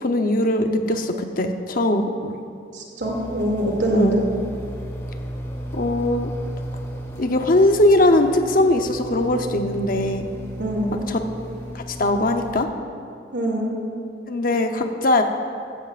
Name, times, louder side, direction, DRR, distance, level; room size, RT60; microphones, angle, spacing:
voice 1, 0.0-2.4 3.9-4.1 5.7-6.3 7.2-10.3 11.1-11.2 11.7-12.7 14.3-15.2, left 1 dB, 50° left, 5 dB, 0.8 m, -20 dB
voice 2, 2.7-4.2 10.6-11.1 13.3-13.8, equal, 80° right, -2 dB, 2.5 m, -23 dB
sound 1, 3.0-12.6, equal, 15° left, 1.4 m, -34 dB
15.5 x 15.0 x 2.5 m, 2.4 s
head